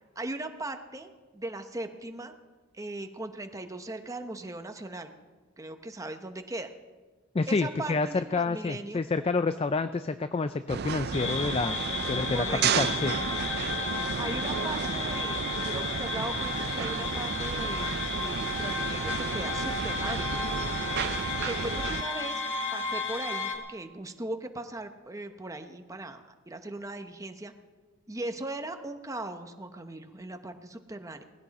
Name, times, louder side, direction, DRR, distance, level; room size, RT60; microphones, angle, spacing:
voice 1, 0.2-2.3 2.7-5.1 5.6-6.7 7.5-9.0 12.1-12.6 14.2-20.3 21.4-22.4 22.7-27.5 28.1-31.2, right 2 dB, 15° right, 7 dB, 1.0 m, -38 dB
voice 2, 7.3-11.8 12.1-12.5 12.8-13.1, left 4 dB, 30° left, 11 dB, 0.4 m, -28 dB
sound 1, 10.7-22.0, right 6 dB, 50° right, 0.4 m, -32 dB
sound 2, 11.1-23.6, left 4 dB, 65° left, 2.0 m, -33 dB
19.0 x 16.0 x 4.2 m, 1.3 s
head